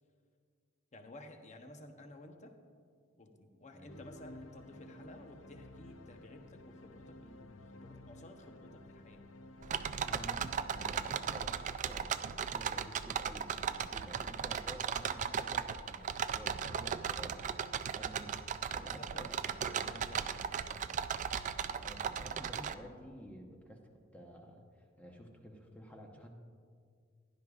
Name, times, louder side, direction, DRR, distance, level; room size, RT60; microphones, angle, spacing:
voice 1, 0.9-2.6 3.2-9.2 9.7-10.0 18.7-19.3 19.6-20.3 20.7-21.1, left 1 dB, 35° left, 5 dB, 0.8 m, -54 dB
sound 1, 3.9-12.3, left 2 dB, 70° left, 0.6 m, -54 dB
sound 2, 9.6-22.7, right 7 dB, 40° right, 0.3 m, -37 dB
voice 2, 10.0-18.4 18.7-19.3 21.8-26.3, equal, 5° left, 1 dB, 0.9 m, -51 dB
16.0 x 11.0 x 2.4 m, 2.2 s
head